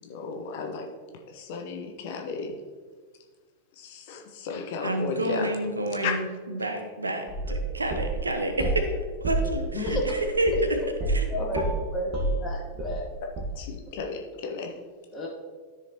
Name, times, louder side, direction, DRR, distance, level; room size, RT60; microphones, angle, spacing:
voice 1, 0.0-0.9 1.3-2.6 3.8-5.6 5.9-6.2 9.7-10.0 13.5-14.7, left 5 dB, 50° left, 2 dB, 1.1 m, -34 dB
voice 2, 4.8-8.8 9.2-10.5 11.1-11.2, right 1 dB, 80° right, 6 dB, 0.8 m, -29 dB
sound 1, 7.3-8.9 9.2-11.3 11.5-13.1 13.4-13.5, right 2 dB, 35° right, 1.7 m, -28 dB
voice 3, 11.3-13.1 15.1-15.3, left 1 dB, 20° left, -6 dB, 2.3 m, -32 dB
13.5 x 4.9 x 3.0 m, 1.5 s
figure-of-eight pair, 90°, 0 cm